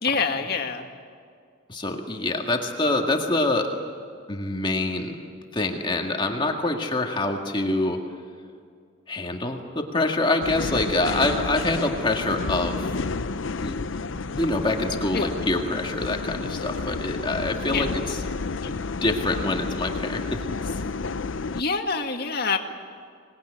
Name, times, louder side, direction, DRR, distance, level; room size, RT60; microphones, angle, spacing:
voice 1, 0.0-0.9 15.1-15.3 17.7-17.9 21.5-22.6, left 4 dB, 50° left, 4 dB, 2.1 m, -26 dB
voice 2, 1.7-3.7 4.3-5.2 5.5-8.0 9.1-12.9 13.6-13.8 14.4-18.2 18.6-20.4, left 2 dB, 25° left, 2 dB, 1.9 m, -25 dB
sound 1, 10.4-21.6, left 4 dB, 70° left, 0.6 m, -30 dB
26.0 x 20.0 x 10.0 m, 2.2 s
head